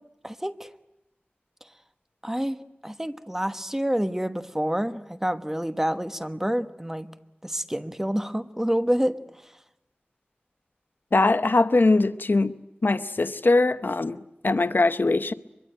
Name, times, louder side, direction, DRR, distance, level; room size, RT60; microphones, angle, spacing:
voice 1, 0.2-0.7 2.2-2.6 2.8-7.1 7.4-9.2, equal, 10° right, 1.2 m, -27 dB
voice 2, 11.1-12.5 12.8-15.3, left 2 dB, 65° left, 0.8 m, -21 dB
24.0 x 23.0 x 9.0 m
wide cardioid pair, 55°, 4 cm